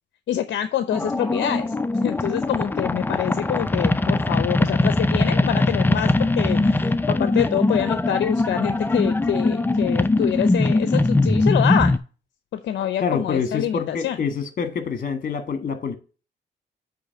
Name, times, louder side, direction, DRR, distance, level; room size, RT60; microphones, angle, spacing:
voice 1, 0.3-1.7 2.0-12.0 12.5-14.2, left 10 dB, 65° left, 0.6 m, -26 dB
sound 1, 0.9-12.0, left 2 dB, 10° left, 0.4 m, -21 dB
voice 2, 13.0-15.9, left 6 dB, 45° left, 1.5 m, -26 dB
8.3 x 3.0 x 6.4 m
cardioid pair, 90°, 20 cm